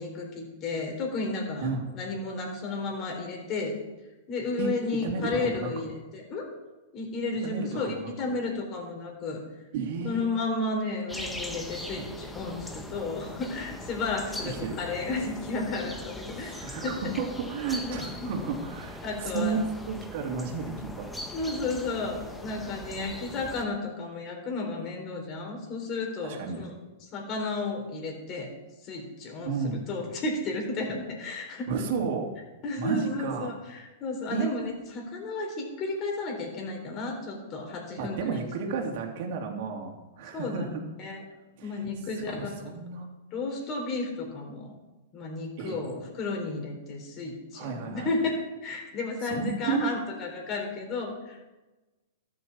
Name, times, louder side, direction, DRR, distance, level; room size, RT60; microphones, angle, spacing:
voice 1, 0.0-1.7 1.9-3.7 4.3-6.5 6.9-9.4 10.0-16.5 16.8-17.0 17.8-18.3 19.0-19.6 21.3-26.7 27.0-28.5 28.8-29.5 29.9-31.7 32.6-38.5 40.3-40.6 41.0-41.2 41.6-42.7 43.3-44.7 45.1-51.5, left 3 dB, 35° left, 1 dB, 4.1 m, -33 dB
voice 2, 4.6-5.7 7.4-8.4 9.7-10.2 14.4-14.8 16.4-19.6 19.9-21.1 26.2-26.6 29.4-29.9 31.7-32.4 32.8-33.6 34.3-34.5 38.0-41.2 41.6-41.7 42.3-43.1 45.6-45.8 47.5-48.1 49.2-49.9, right 5 dB, 55° right, 2 dB, 3.0 m, -32 dB
sound 1, 11.1-23.6, left 1 dB, 5° left, 1.5 m, -40 dB
13.5 x 7.7 x 7.2 m, 1.1 s
hypercardioid pair, 125°, 0 cm